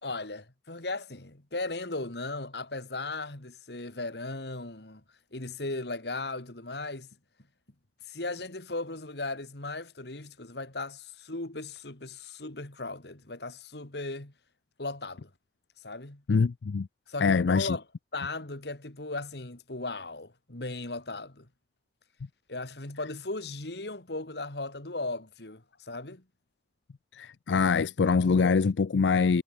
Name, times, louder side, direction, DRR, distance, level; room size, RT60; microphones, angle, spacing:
voice 1, 0.0-5.0 5.3-7.1 8.1-14.3 14.8-15.3 15.8-16.2 17.1-17.8 18.1-21.5 22.5-26.2, left 2 dB, 65° left, 2.4 m, -37 dB
voice 2, 16.3-16.9 17.2-17.8 27.1-29.4, left 5 dB, 85° left, 0.5 m, -24 dB
head